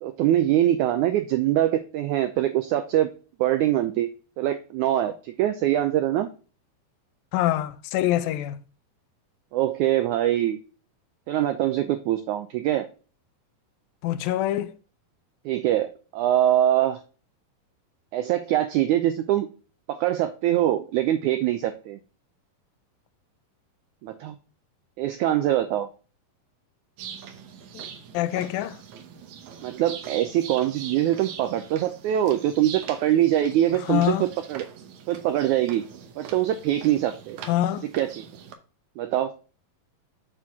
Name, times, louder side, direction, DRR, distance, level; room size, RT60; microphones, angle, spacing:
voice 1, 0.0-3.1 3.4-4.1 4.4-6.3 9.5-10.6 11.3-12.8 15.4-17.0 18.1-19.5 19.9-22.0 24.0-24.3 25.0-25.9 29.6-34.6 35.1-35.8 36.2-37.4 37.8-38.2 39.0-39.3, right 12 dB, 85° right, 1.7 m, -23 dB
voice 2, 7.3-8.6 14.0-14.7 27.7-27.9 28.1-28.8 33.9-34.3 37.5-37.9, left 13 dB, 85° left, 2.3 m, -25 dB
sound 1, 27.0-38.5, right 7 dB, 70° right, 2.0 m, -42 dB
6.9 x 6.2 x 3.6 m
omnidirectional pair, 4.1 m